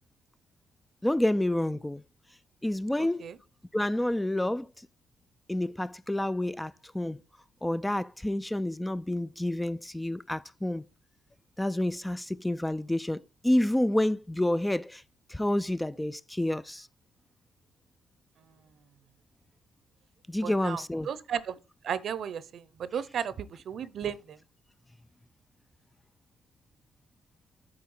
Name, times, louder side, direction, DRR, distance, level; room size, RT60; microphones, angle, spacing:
voice 1, 1.0-2.0 2.6-3.3 3.7-4.7 5.5-7.2 7.6-10.8 11.6-15.0 15.3-16.9 20.3-21.1, left 1 dB, 10° left, 0.3 m, -29 dB
voice 2, 20.4-20.8 21.1-21.5 21.8-22.4 22.8-24.2, right 8 dB, 60° right, 0.7 m, -33 dB
8.8 x 4.2 x 5.4 m
cardioid pair, 90°, 0 cm